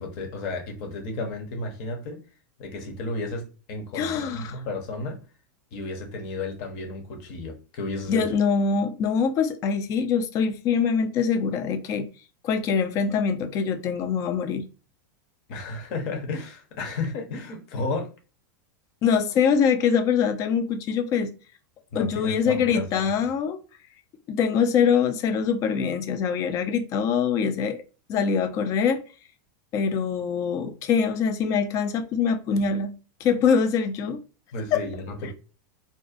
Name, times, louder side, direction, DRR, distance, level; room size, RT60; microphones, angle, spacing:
voice 1, 0.0-2.2 2.6-5.2 5.7-8.3 15.5-18.1 21.9-23.1 34.5-35.3, left 3 dB, 45° left, 0.7 m, -33 dB
voice 2, 3.9-4.6 8.1-12.1 12.4-14.6 19.0-21.3 21.9-23.6 24.3-27.8 28.1-29.0 29.7-32.9 33.2-34.2 34.7-34.8, left 6 dB, 30° left, 0.3 m, -24 dB
2.4 x 2.1 x 2.4 m
supercardioid pair, 155°, 11 cm